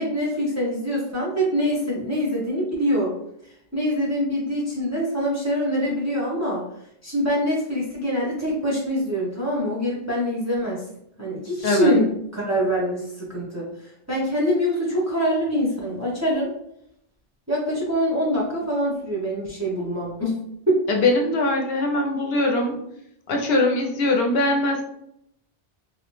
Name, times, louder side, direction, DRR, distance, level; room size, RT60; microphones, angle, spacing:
voice 1, 0.0-3.1 3.7-6.6 7.0-10.8 11.2-13.7 14.1-16.5 17.5-20.4 20.7-20.8, equal, 20° right, -5 dB, 0.5 m, -24 dB
voice 2, 20.9-22.8 23.3-24.8, left 2 dB, 75° left, 2 dB, 0.8 m, -21 dB
2.6 x 2.0 x 3.0 m, 0.74 s
omnidirectional pair, 1.0 m